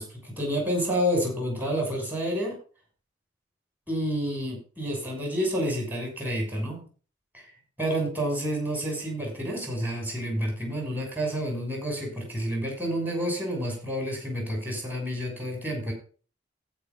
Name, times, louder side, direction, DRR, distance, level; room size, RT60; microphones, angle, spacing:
voice 1, 0.0-2.6 3.9-6.8 7.3-7.5 7.8-15.9, equal, 10° right, 0 dB, 6.0 m, -29 dB
14.5 x 5.9 x 5.6 m, 0.39 s
head